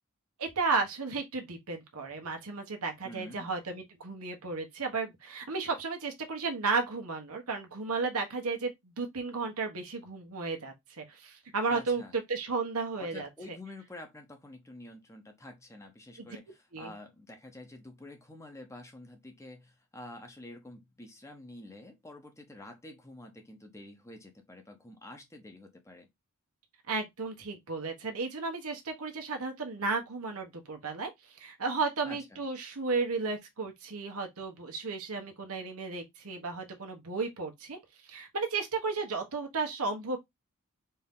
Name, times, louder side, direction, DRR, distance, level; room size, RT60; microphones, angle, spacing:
voice 1, 0.4-12.0 12.3-13.6 16.2-16.3 16.7-16.9 26.9-37.8 38.1-40.2, right 4 dB, 80° right, 1.2 m, -34 dB
voice 2, 3.0-3.5 11.7-12.2 13.0-26.1 32.0-32.5, left 1 dB, 15° left, 0.8 m, -48 dB
4.4 x 2.8 x 3.5 m
head